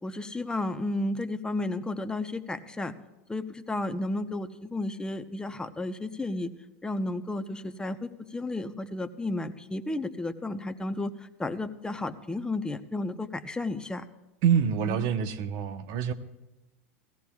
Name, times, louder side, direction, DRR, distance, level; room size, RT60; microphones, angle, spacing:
voice 1, 0.0-2.9 3.3-6.5 6.8-11.1 11.4-14.0 14.8-15.1, left 2 dB, 10° left, 0.7 m, -32 dB
voice 2, 14.4-16.1, right 8 dB, 55° right, 0.9 m, -26 dB
16.5 x 15.5 x 2.4 m
hypercardioid pair, 95°, 8 cm